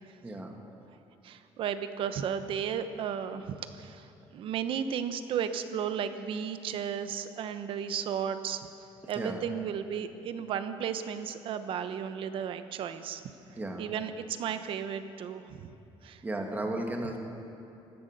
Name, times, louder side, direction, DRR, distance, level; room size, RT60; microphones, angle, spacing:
voice 1, 0.2-0.6 9.0-9.4 13.6-13.9 16.2-17.2, right 1 dB, 15° right, 2 dB, 2.0 m, -34 dB
voice 2, 1.2-4.1 4.3-8.7 9.1-13.2 13.8-15.7 16.0-16.2, right 8 dB, 60° right, 10 dB, 1.0 m, -34 dB
17.0 x 12.5 x 6.7 m, 2.9 s
cardioid pair, 125°, 10 cm